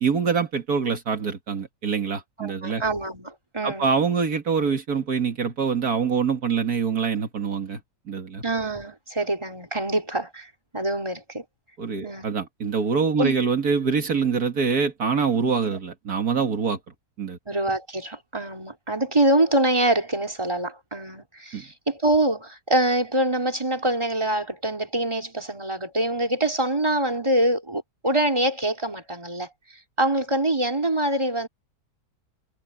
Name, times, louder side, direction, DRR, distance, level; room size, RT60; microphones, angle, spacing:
voice 1, 0.0-2.8 3.6-7.8 8.1-8.4 11.8-16.8 17.2-17.4 21.5-21.6, right 6 dB, 75° right, 2.4 m, -24 dB
voice 2, 2.4-3.9 8.4-11.4 12.0-12.3 13.2-13.4 15.7-15.8 17.5-29.5 30.0-31.5, right 1 dB, 15° right, 4.0 m, -25 dB
omnidirectional pair, 1.6 m